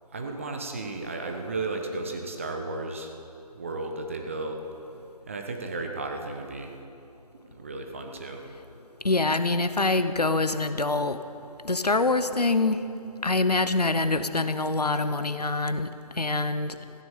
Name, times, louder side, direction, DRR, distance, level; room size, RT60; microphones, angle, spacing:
voice 1, 0.1-3.1 3.5-4.6 5.3-6.7 7.3-8.4, right 3 dB, 20° right, 3 dB, 0.8 m, -34 dB
voice 2, 9.0-11.2 11.6-12.8 13.2-15.9 16.2-16.7, left 3 dB, 75° left, 11 dB, 0.9 m, -25 dB
15.0 x 10.5 x 7.0 m, 2.7 s
figure-of-eight pair, 155°, 20 cm